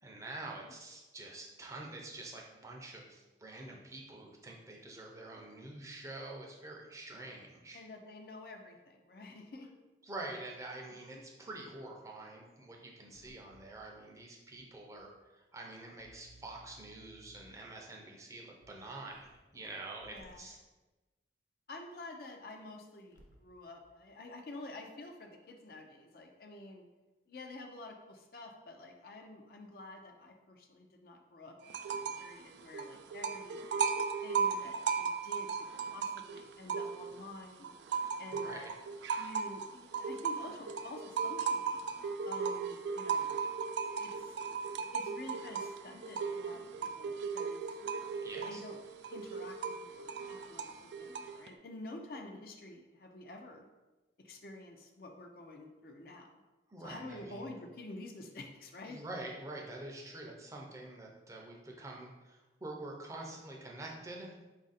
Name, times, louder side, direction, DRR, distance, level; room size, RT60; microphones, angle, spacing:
voice 1, 0.0-7.8 10.0-20.6 38.3-38.7 48.2-48.6 56.7-57.4 58.9-64.3, right 2 dB, 15° right, -1 dB, 0.5 m, -46 dB
voice 2, 7.7-9.7 11.0-11.2 13.2-13.4 20.0-20.5 21.7-26.9 27.3-33.6 34.2-35.5 35.8-37.7 38.2-38.7 39.2-41.8 42.2-43.4 44.0-44.4 44.9-46.7 47.0-47.7 48.4-48.8 49.1-53.7 54.2-56.4 56.8-59.0, left 2 dB, 55° left, 3 dB, 0.4 m, -49 dB
sound 1, 13.1-13.8 14.5-14.6 15.0-15.1 16.0-17.7 18.6-18.7 19.1-19.7 20.0-20.4 21.9-22.0 23.0-23.5 23.8-23.9, right 1 dB, 85° left, 0.7 m, -61 dB
sound 2, 31.7-32.3 32.6-37.2 37.6-51.5, right 5 dB, 75° right, 0.3 m, -36 dB
4.1 x 2.5 x 4.0 m, 1.1 s
head